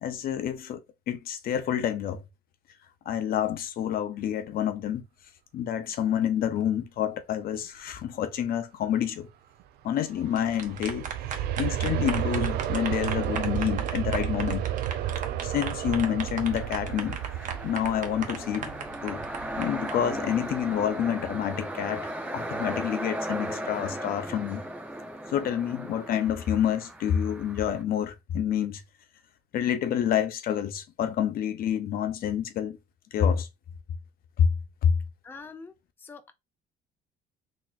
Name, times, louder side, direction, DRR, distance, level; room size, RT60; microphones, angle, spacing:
voice 1, 0.0-2.2 3.1-5.0 5.5-9.3 9.8-11.1 11.6-14.6 15.4-17.2 17.6-18.8 19.0-19.2 19.6-24.6 25.3-28.8 29.5-32.8 33.1-33.5 34.4-34.5 34.8-34.9, left 9 dB, 60° left, 0.6 m, -28 dB
Aircraft, 10.1-20.9 21.4-21.5, right 11 dB, 70° right, 0.4 m, -32 dB
sound 1, 10.2-19.9, right 7 dB, 50° right, 0.8 m, -37 dB
sound 2, 16.5-27.8, right 1 dB, 10° right, 0.9 m, -37 dB
voice 2, 35.2-36.3, left 4 dB, 10° left, 0.5 m, -45 dB
3.8 x 2.9 x 2.4 m
cardioid pair, 110°, 17 cm